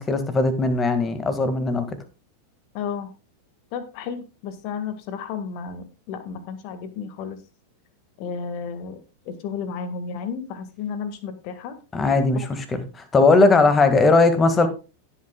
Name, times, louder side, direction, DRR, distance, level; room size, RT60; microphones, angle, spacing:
voice 1, 0.0-1.9 11.9-14.7, left 3 dB, 20° left, 10 dB, 1.9 m, -19 dB
voice 2, 2.7-3.1 3.7-7.4 8.2-9.0 9.3-11.8 13.5-13.6, left 6 dB, 45° left, 11 dB, 1.8 m, -32 dB
17.0 x 8.4 x 2.3 m, 0.31 s
figure-of-eight pair, 90°, 0 cm